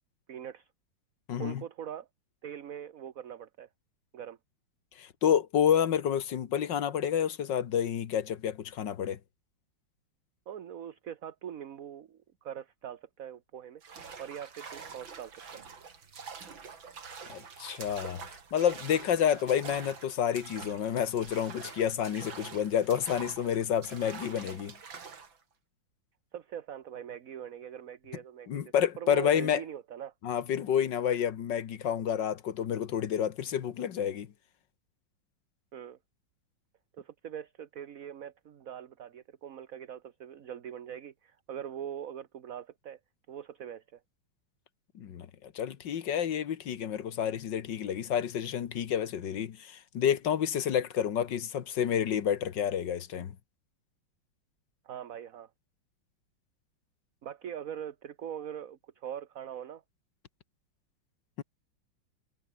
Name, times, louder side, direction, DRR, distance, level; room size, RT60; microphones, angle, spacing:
voice 1, 0.3-0.7 1.4-2.1 2.4-3.7 4.1-4.4 10.5-15.7 26.3-30.1 35.7-36.0 36.9-43.0 43.3-44.0 54.8-55.5 57.2-59.8, right 9 dB, 50° right, 1.3 m, -42 dB
voice 2, 1.3-1.6 5.0-9.2 17.3-18.2 18.5-24.8 28.5-29.6 30.2-34.3 45.0-53.4 61.4-61.5, left 9 dB, 65° left, 1.9 m, -29 dB
sound 1, 13.8-25.4, right 5 dB, 75° right, 3.4 m, -46 dB
omnidirectional pair, 2.1 m